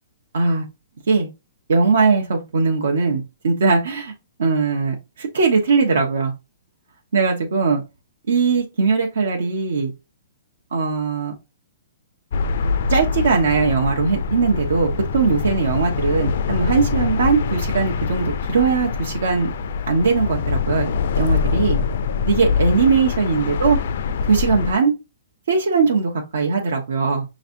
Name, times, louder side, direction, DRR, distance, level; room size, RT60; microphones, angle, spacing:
voice 1, 0.3-0.7 1.1-1.3 1.7-4.1 4.4-6.3 7.1-7.8 8.3-9.9 10.7-11.3 12.9-19.5 19.9-20.9 21.2-21.8 22.3-23.8 24.2-24.9 25.5-27.2, right 4 dB, 75° right, 1 dB, 1.1 m, -20 dB
sound 1, 12.3-24.7, left 5 dB, 50° left, 0.4 m, -24 dB
6.0 x 3.2 x 2.7 m, 0.24 s
hypercardioid pair, 170°, 0 cm